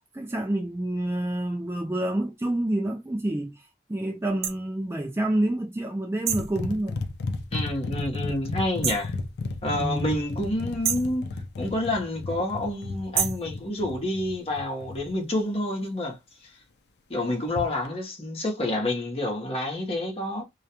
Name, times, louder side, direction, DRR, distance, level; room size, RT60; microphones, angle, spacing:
voice 1, 0.1-3.5 3.9-7.0 9.8-10.2, right 1 dB, 15° right, 0.3 m, -28 dB
sound 1, 4.4-4.6 6.3-6.5 8.8-9.1 10.8-11.1 13.1-13.5, right 8 dB, 60° right, 0.6 m, -27 dB
sound 2, 6.3-15.1 17.5-17.9, left 3 dB, 75° left, 0.4 m, -34 dB
voice 2, 7.5-9.1 9.6-11.3 11.6-16.2 17.1-20.4, left 1 dB, 35° left, 0.8 m, -28 dB
2.3 x 2.2 x 2.8 m
head